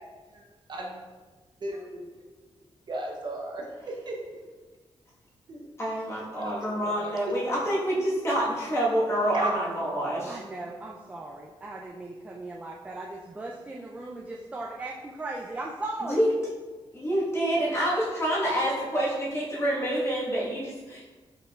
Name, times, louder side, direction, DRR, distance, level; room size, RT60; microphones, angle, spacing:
voice 1, 0.7-1.0 1.6-2.0 2.9-4.2 5.5-5.7 6.4-7.3 9.3-9.5, right 1 dB, 50° right, -1 dB, 0.7 m, -35 dB
voice 2, 5.8-10.4 16.1-16.3 16.9-21.0, equal, 25° left, -7 dB, 1.3 m, -27 dB
voice 3, 10.3-16.2, right 2 dB, 15° right, -1 dB, 0.3 m, -37 dB
4.9 x 4.5 x 2.3 m, 1.3 s
wide cardioid pair, 145°, 10 cm